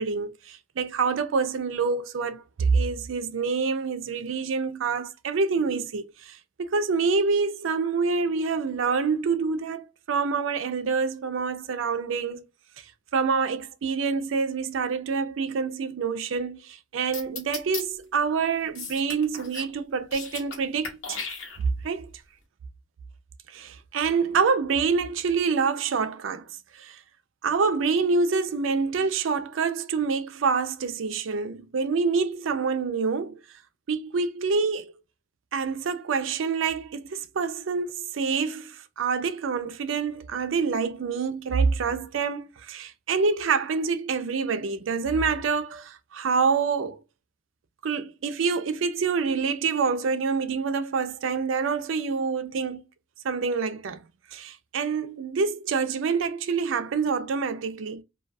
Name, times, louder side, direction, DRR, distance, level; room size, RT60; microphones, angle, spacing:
voice 1, 0.0-12.4 13.1-21.2 21.8-22.1 23.5-26.5 26.7-27.0 27.4-33.4 33.9-34.9 35.5-47.0 47.8-52.8 53.2-54.0 54.3-58.0, right 5 dB, 70° right, 0.4 m, -26 dB
sound 1, 17.1-17.8 18.8-19.7 20.0-20.6 20.8-21.9, left 4 dB, 80° left, 0.9 m, -35 dB
2.3 x 2.3 x 2.5 m
head